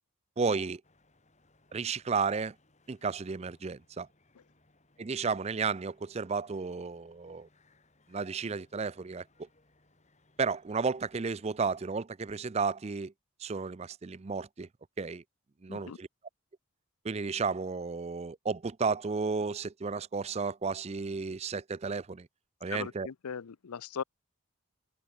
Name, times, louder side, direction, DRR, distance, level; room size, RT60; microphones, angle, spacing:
voice 1, 0.4-0.8 1.7-2.6 2.9-4.1 5.0-7.5 8.1-9.5 10.4-13.1 13.4-14.7 15.0-15.2 15.6-16.1 17.0-22.3 22.6-23.1, right 5 dB, 30° right, 0.4 m, -33 dB
sound 1, 0.8-11.8, left 2 dB, 30° left, 4.4 m, -68 dB
voice 2, 22.7-24.0, left 6 dB, 85° left, 0.6 m, -39 dB
head